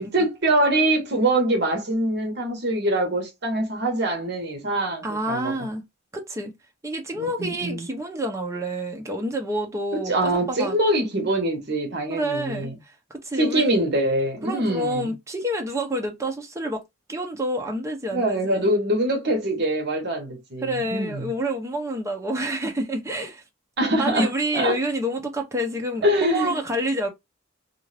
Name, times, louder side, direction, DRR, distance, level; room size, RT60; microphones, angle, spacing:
voice 1, 0.0-5.7 7.1-7.9 9.9-12.8 13.4-15.1 18.1-21.3 23.8-24.8 26.0-26.6, right 1 dB, 55° right, 1.0 m, -24 dB
voice 2, 5.0-5.8 6.1-6.5 6.8-10.8 12.1-12.7 13.1-13.6 14.4-16.8 17.1-18.7 20.6-23.4 24.0-27.1, right 1 dB, 15° right, 0.6 m, -28 dB
2.5 x 2.4 x 3.2 m
head